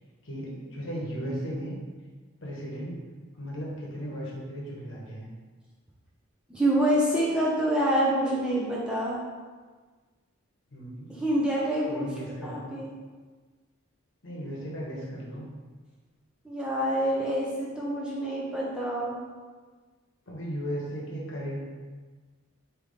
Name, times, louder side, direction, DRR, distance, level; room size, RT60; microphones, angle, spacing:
voice 1, 0.2-1.8 2.4-3.0 3.4-5.3 10.7-11.1 11.9-12.7 14.2-15.5 20.3-21.6, equal, 60° left, -4 dB, 1.0 m, -36 dB
voice 2, 6.5-9.2 11.1-12.1 12.4-12.9 16.4-19.2, right 1 dB, 5° right, -6 dB, 0.4 m, -26 dB
3.3 x 2.8 x 3.9 m, 1.4 s
head